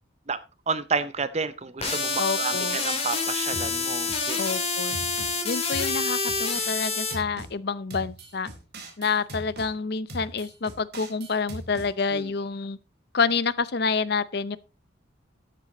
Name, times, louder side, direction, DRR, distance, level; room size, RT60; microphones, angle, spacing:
voice 1, 0.7-4.4 12.1-12.3, right 5 dB, 30° right, 0.6 m, -30 dB
sound 1, 1.8-7.1, left 4 dB, 30° left, 2.8 m, -27 dB
voice 2, 2.2-2.8 4.4-5.0 5.4-8.5 9.0-12.8 13.1-14.6, left 5 dB, 50° left, 0.6 m, -28 dB
sound 2, 3.5-5.3 5.7-7.5 7.9-9.7 10.1-11.9, right 1 dB, 50° right, 2.9 m, -40 dB
12.5 x 8.4 x 3.8 m
head